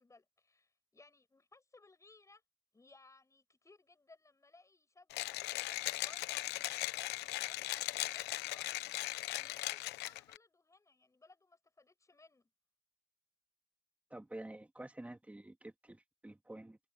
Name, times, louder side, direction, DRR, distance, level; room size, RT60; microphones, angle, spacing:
voice 1, 0.0-2.4 2.7-12.5, left 3 dB, 20° left, 7.7 m, -63 dB
Mechanisms, 5.1-10.4, left 18 dB, 85° left, 0.9 m, -38 dB
voice 2, 14.1-16.8, right 1 dB, 10° right, 2.6 m, -49 dB
cardioid pair, 110°, 17 cm